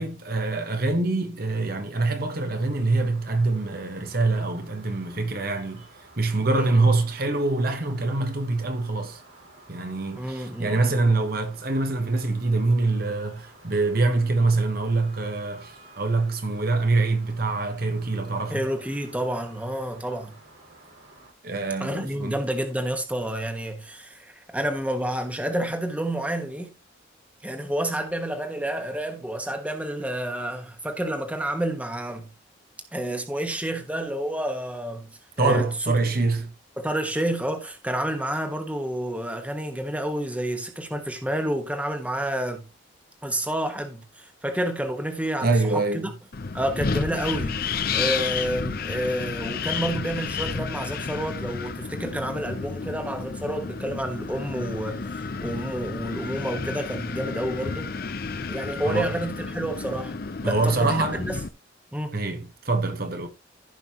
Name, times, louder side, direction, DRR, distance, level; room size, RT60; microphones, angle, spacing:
voice 1, 0.0-5.8 6.2-9.2 9.7-18.7 21.4-22.4 35.4-36.5 45.4-46.1 58.8-59.1 60.4-61.2 62.1-63.3, right 3 dB, 50° right, 1.2 m, -25 dB
sound 1, 2.2-21.3, right 2 dB, 85° right, 4.1 m, -52 dB
voice 2, 6.5-6.8 10.1-11.0 18.5-20.4 21.8-26.7 27.4-32.3 32.9-35.7 36.8-42.6 43.2-46.1 46.5-57.9 58.5-61.4 61.9-62.1, right 1 dB, 5° right, 1.3 m, -29 dB
Wind, 46.3-61.5, left 5 dB, 50° left, 0.6 m, -31 dB
15.0 x 5.5 x 2.9 m
head